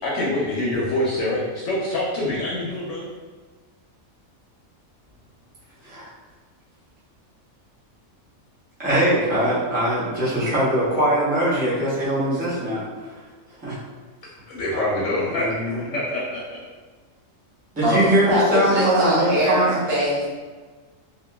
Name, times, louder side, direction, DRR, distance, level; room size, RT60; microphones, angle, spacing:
voice 1, 0.0-3.1 14.5-15.5 15.8-16.4, left 1 dB, 70° left, -5 dB, 0.8 m, -25 dB
voice 2, 8.8-12.9 13.6-13.8 14.7-14.9 15.4-15.7 17.7-19.8, right 1 dB, 10° right, -9 dB, 0.4 m, -21 dB
voice 3, 17.8-20.3, equal, 70° right, -8 dB, 1.1 m, -22 dB
2.9 x 2.3 x 2.2 m, 1.4 s
omnidirectional pair, 1.4 m